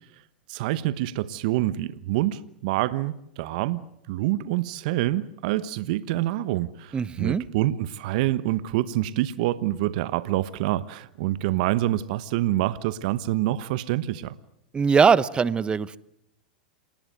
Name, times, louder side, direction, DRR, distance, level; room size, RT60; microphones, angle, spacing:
voice 1, 0.5-14.3, right 15 dB, 60° right, 16 dB, 1.1 m, -26 dB
voice 2, 6.9-7.4 14.7-16.0, right 6 dB, 20° right, 19 dB, 1.0 m, -21 dB
28.5 x 19.5 x 9.4 m, 0.77 s
hypercardioid pair, 105°, 5 cm